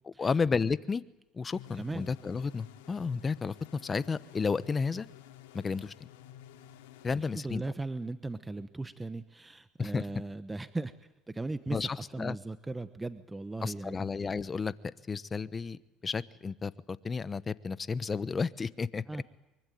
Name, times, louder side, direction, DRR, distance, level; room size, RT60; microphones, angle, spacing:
voice 1, 0.2-1.0 1.3-5.1 5.5-5.9 7.0-7.6 9.8-10.0 11.7-12.4 13.6-14.7 15.1-19.0, left 5 dB, 25° left, 16 dB, 1.0 m, -32 dB
sound 1, 1.5-8.0, left 11 dB, 85° left, 2.7 m, -52 dB
voice 2, 1.7-2.1 7.1-10.9 11.3-14.0 19.1-19.2, right 2 dB, 15° right, 12 dB, 1.1 m, -38 dB
24.0 x 23.5 x 9.3 m, 0.97 s
supercardioid pair, 90°, 0 cm